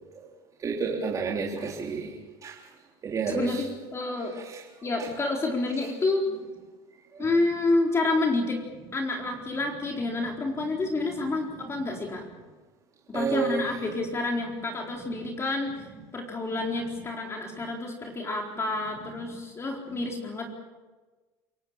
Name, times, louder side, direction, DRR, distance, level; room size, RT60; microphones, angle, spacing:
voice 1, 0.6-2.1 2.4-2.5 3.0-3.6 13.1-13.6, right 5 dB, 30° right, -2 dB, 3.7 m, -29 dB
voice 2, 3.3-4.4 4.8-6.3 7.2-8.6 8.9-12.2 13.1-15.9 16.1-20.5, left 2 dB, 25° left, 1 dB, 4.2 m, -29 dB
28.0 x 18.0 x 7.4 m, 1.3 s
supercardioid pair, 105°, 11 cm